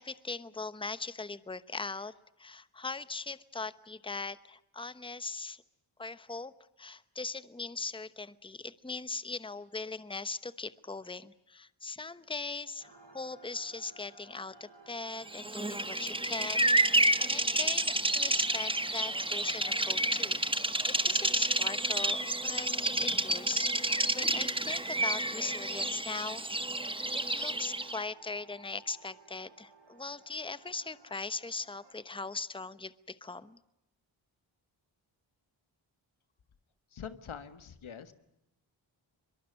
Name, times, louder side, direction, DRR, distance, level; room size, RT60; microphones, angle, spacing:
voice 1, 0.0-2.1 2.4-5.6 6.0-6.5 6.8-16.7 17.2-26.4 27.1-33.6, left 4 dB, 10° left, 15 dB, 1.0 m, -40 dB
sound 1, 12.8-31.9, right 3 dB, 60° right, 4.1 m, -57 dB
Bird vocalization bird call bird song, 15.3-28.0, right 1 dB, 10° right, 1.4 m, -30 dB
voice 2, 36.9-38.1, left 7 dB, 80° left, 11 dB, 1.7 m, -44 dB
23.0 x 22.0 x 9.5 m, 0.87 s
cardioid pair, 50°, 48 cm